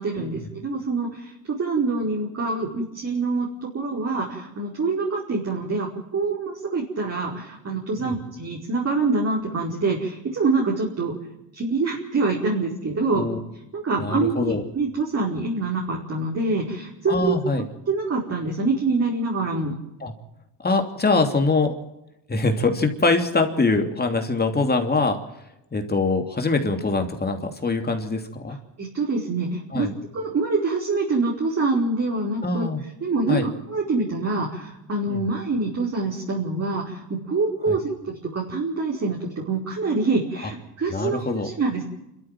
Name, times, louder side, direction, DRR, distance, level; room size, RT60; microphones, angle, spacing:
voice 1, 0.0-3.5 3.7-11.1 11.5-13.3 13.7-19.7 28.8-32.7 33.0-41.8, right 3 dB, 35° right, -2 dB, 5.1 m, -25 dB
voice 2, 14.0-14.6 17.1-17.6 20.0-20.1 20.6-21.7 22.3-25.2 25.7-28.6 29.7-29.9 32.4-32.8 33.3-33.5 35.1-35.2 37.7-37.8 40.9-41.5, left 3 dB, 20° left, 4 dB, 3.0 m, -23 dB
28.0 x 13.5 x 7.6 m, 0.90 s
cardioid pair, 95°, 43 cm